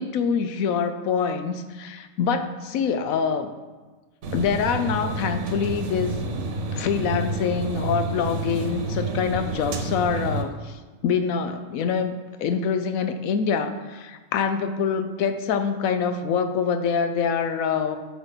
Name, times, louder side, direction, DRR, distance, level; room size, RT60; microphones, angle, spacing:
voice 1, 0.0-3.5 4.3-6.4 6.7-18.0, left 6 dB, 85° left, 9 dB, 1.1 m, -25 dB
sound 1, 4.2-10.4, right 2 dB, 60° right, 1.1 m, -29 dB
10.5 x 5.2 x 4.0 m, 1.3 s
omnidirectional pair, 1.4 m